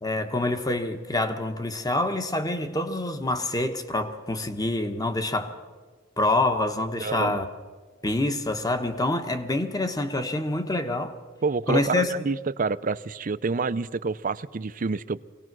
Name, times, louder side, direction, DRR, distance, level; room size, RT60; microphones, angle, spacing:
voice 1, 0.0-5.6 6.2-7.5 8.0-11.1 11.7-12.1, left 2 dB, 20° left, 1.2 m, -26 dB
voice 2, 7.0-7.4 11.4-15.2, right 4 dB, 40° right, 0.5 m, -28 dB
23.5 x 18.5 x 6.2 m
head